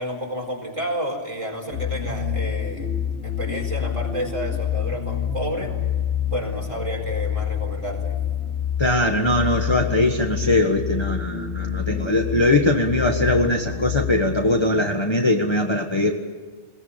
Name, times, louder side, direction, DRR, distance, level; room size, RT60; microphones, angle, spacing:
voice 1, 0.0-5.7 6.3-8.2, equal, 25° right, 1 dB, 4.5 m, -30 dB
sound 1, 1.7-14.4, left 8 dB, 80° left, 3.2 m, -27 dB
voice 2, 8.8-16.1, left 2 dB, 25° left, 2 dB, 1.4 m, -21 dB
21.0 x 20.0 x 8.9 m, 1.4 s
omnidirectional pair, 1.2 m